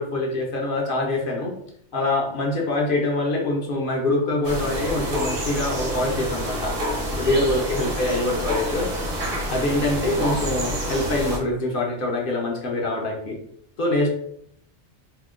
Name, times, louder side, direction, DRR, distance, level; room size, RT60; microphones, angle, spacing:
voice 1, 0.0-1.5 1.9-6.8 7.1-8.9 9.5-13.4 13.8-14.1, left 2 dB, 55° left, 0 dB, 0.7 m, -24 dB
sound 1, 4.4-11.4, equal, 60° right, 1.1 m, -27 dB
2.7 x 2.1 x 3.6 m, 0.68 s
omnidirectional pair, 1.2 m